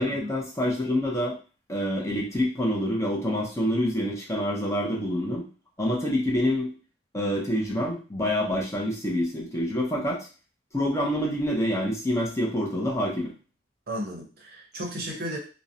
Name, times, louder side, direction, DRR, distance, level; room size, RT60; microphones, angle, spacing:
voice 1, 0.0-1.4 1.7-5.4 5.8-6.7 7.1-10.3 10.7-13.3, equal, 15° left, -2 dB, 0.5 m, -27 dB
voice 2, 13.9-15.4, equal, 55° right, 0 dB, 0.7 m, -34 dB
2.5 x 2.0 x 2.7 m, 0.35 s
head